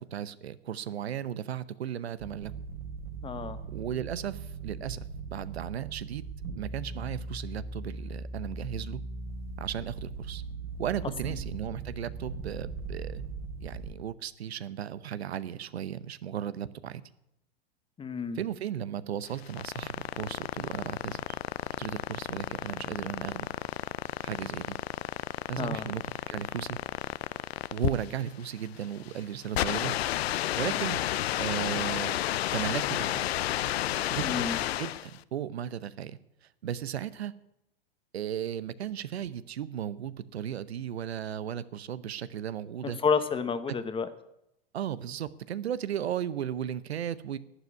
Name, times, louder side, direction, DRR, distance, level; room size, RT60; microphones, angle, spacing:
voice 1, 0.0-2.5 3.7-6.2 6.6-9.0 9.6-10.4 10.8-13.2 13.6-17.0 18.3-21.4 21.8-23.5 24.2-24.8 25.5-26.8 27.7-29.9 30.6-31.0 31.4-32.1 32.5-33.2 34.1-34.5 34.8-37.3 38.1-43.0 44.7-47.4, right 10 dB, 90° right, 16 dB, 0.8 m, -35 dB
sound 1, 2.2-13.9, right 4 dB, 65° right, 3.8 m, -39 dB
voice 2, 3.2-3.6 11.2-11.3 18.0-18.4 25.6-25.9 34.2-34.6 42.8-44.1, left 5 dB, 15° left, 11 dB, 1.1 m, -30 dB
sound 2, 19.2-35.1, left 13 dB, 75° left, 0.6 m, -32 dB
11.5 x 8.2 x 9.6 m, 0.84 s
hypercardioid pair, 115°, 31 cm